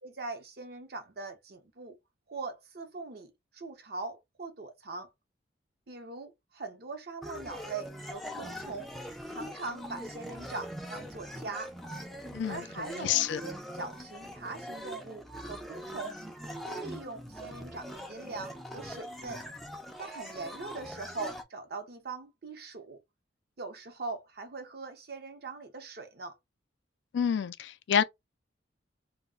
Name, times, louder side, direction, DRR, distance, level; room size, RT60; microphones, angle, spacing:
voice 1, 0.0-2.0 2.3-5.1 5.9-8.9 9.3-11.7 12.5-16.2 16.6-19.4 20.0-23.0 23.6-26.4, right 3 dB, 55° right, 0.7 m, -41 dB
sound 1, 7.2-21.4, equal, ahead, 0.4 m, -42 dB
voice 2, 12.3-13.4 27.1-28.0, left 8 dB, 70° left, 0.3 m, -28 dB
2.3 x 2.1 x 3.6 m
head